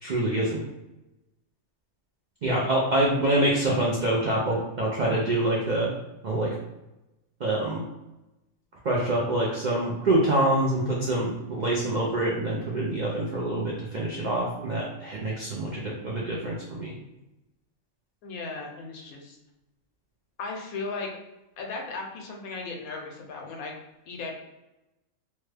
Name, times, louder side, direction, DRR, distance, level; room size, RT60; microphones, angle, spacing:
voice 1, 0.0-0.6 2.4-5.9 6.2-6.5 7.4-7.8 8.8-16.9, right 1 dB, 70° right, -4 dB, 0.4 m, -26 dB
voice 2, 18.2-19.4 20.4-21.1 21.6-23.8 24.1-24.3, left 3 dB, 80° left, 1 dB, 1.1 m, -36 dB
3.1 x 2.2 x 3.2 m, 0.96 s
omnidirectional pair, 1.5 m